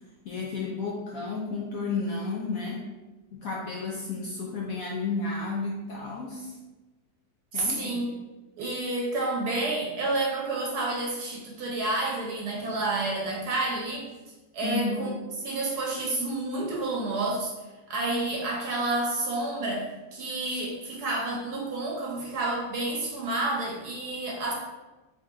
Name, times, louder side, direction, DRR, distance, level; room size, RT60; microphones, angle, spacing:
voice 1, 0.2-2.9 3.3-6.5 7.5-8.0 14.6-15.1, left 3 dB, 75° left, -2 dB, 0.7 m, -32 dB
voice 2, 7.5-8.1 8.6-14.1 14.5-15.1 15.4-17.5 17.9-24.5, right 2 dB, 65° right, -2 dB, 1.2 m, -29 dB
3.8 x 2.7 x 3.6 m, 1.1 s
omnidirectional pair, 2.0 m